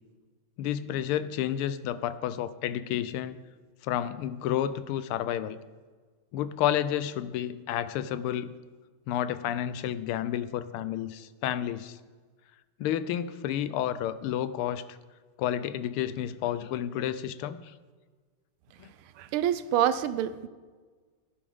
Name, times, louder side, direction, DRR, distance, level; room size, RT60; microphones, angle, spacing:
voice 1, 0.6-3.4 3.8-5.6 6.3-8.5 9.1-12.0 12.8-15.0 15.4-17.7 18.8-18.9, left 11 dB, 85° left, 14 dB, 1.5 m, -30 dB
voice 2, 19.2-20.5, right 10 dB, 80° right, 13 dB, 1.5 m, -27 dB
17.0 x 9.8 x 3.6 m, 1.4 s
omnidirectional pair, 2.3 m